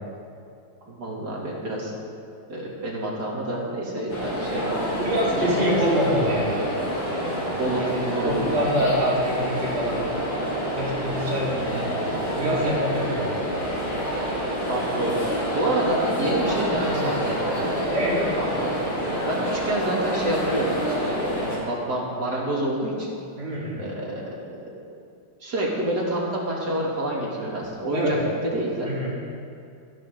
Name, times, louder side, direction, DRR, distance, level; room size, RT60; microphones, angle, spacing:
voice 1, 0.9-1.9 2.5-5.7 7.6-8.4 11.5-12.1 14.7-15.2 15.5-17.5 18.4-23.1 23.8-24.3 25.4-28.2 28.4-28.9, right 1 dB, 50° right, -4 dB, 3.4 m, -28 dB
sound 1, 4.1-21.6, equal, 80° left, 5.2 m, -27 dB
voice 2, 5.0-6.6 7.8-7.9 8.2-10.0 10.7-11.5 12.3-13.5 16.9-17.1 17.9-18.2 23.4-23.9 27.9-28.2 28.8-29.1, equal, 75° right, -7 dB, 5.1 m, -25 dB
27.5 x 10.0 x 4.0 m, 2.4 s
omnidirectional pair, 2.3 m